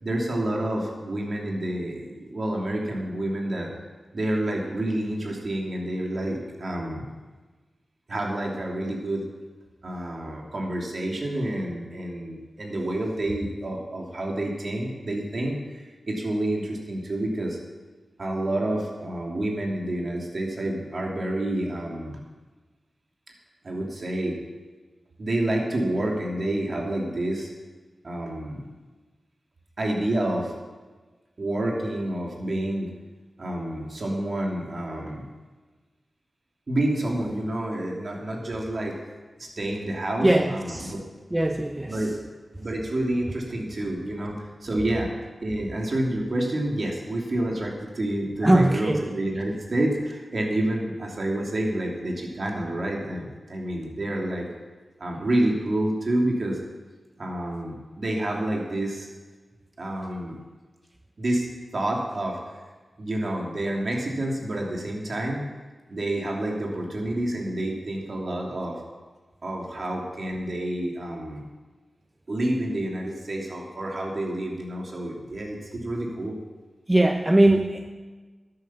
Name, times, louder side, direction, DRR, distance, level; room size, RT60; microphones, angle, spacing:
voice 1, 0.0-3.7 4.1-7.1 8.1-9.2 9.8-17.6 18.2-22.2 23.6-24.4 25.2-27.5 28.0-28.7 29.8-30.5 31.4-32.9 33.4-35.3 36.7-38.9 39.4-41.0 41.9-42.1 42.6-45.1 45.4-54.5 55.0-56.6 57.2-59.1 59.8-60.4 61.2-62.4 63.0-65.5 65.9-68.8 69.4-71.4 72.3-76.4, right 1 dB, 60° right, -1 dB, 2.9 m, -28 dB
voice 2, 40.2-40.9 41.3-42.0 48.4-49.0 76.9-77.9, right 1 dB, 20° right, 4 dB, 0.9 m, -20 dB
12.0 x 9.4 x 5.7 m, 1.3 s
cardioid pair, 50°, 0 cm